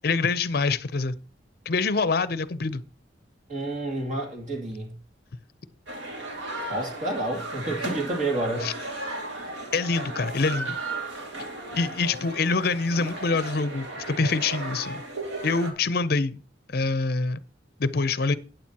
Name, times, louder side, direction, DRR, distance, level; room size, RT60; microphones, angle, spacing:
voice 1, 0.0-1.2 1.7-2.8 8.6-8.7 9.7-10.8 11.7-15.0 15.4-16.4 16.7-17.4 17.8-18.4, left 4 dB, 55° left, 0.6 m, -25 dB
voice 2, 3.5-4.9 6.7-8.7, right 2 dB, 40° right, 2.5 m, -29 dB
sound 1, 5.9-15.7, right 2 dB, 90° right, 2.2 m, -35 dB
12.0 x 9.0 x 2.9 m
head